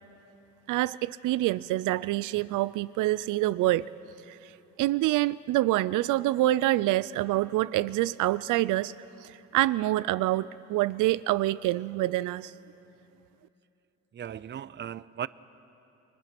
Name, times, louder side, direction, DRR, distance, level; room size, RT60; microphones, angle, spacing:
voice 1, 0.7-3.9 4.3-4.4 4.8-8.9 9.2-12.5, right 16 dB, 85° right, 17 dB, 0.5 m, -26 dB
voice 2, 14.1-15.3, right 9 dB, 35° right, 18 dB, 0.5 m, -37 dB
29.0 x 21.5 x 6.0 m, 2.8 s
cardioid pair, 90°, 30 cm